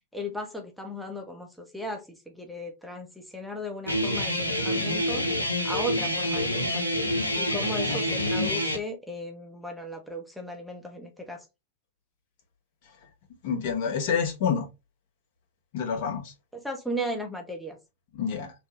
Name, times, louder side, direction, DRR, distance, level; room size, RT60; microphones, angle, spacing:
voice 1, 0.1-5.2 5.6-11.5 16.5-17.8, equal, ahead, 2 dB, 0.7 m, -36 dB
Guitar, 3.9-8.8, left 1 dB, 90° left, 0.6 m, -27 dB
voice 2, 13.4-14.7 15.7-16.3 18.1-18.5, left 6 dB, 55° left, 1 dB, 1.1 m, -28 dB
3.4 x 2.3 x 2.9 m, 0.24 s
figure-of-eight pair, 95°, 0 cm